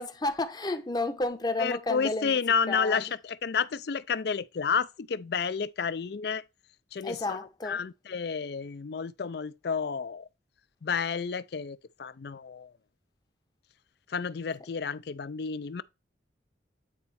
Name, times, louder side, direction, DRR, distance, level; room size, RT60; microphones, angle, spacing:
voice 1, 0.0-2.4 2.7-3.0 7.0-7.8, left 2 dB, 20° left, 0.7 m, -31 dB
voice 2, 1.6-6.4 6.9-10.2 10.8-12.7 14.1-15.8, left 6 dB, 55° left, 0.4 m, -31 dB
8.9 x 4.2 x 4.2 m
head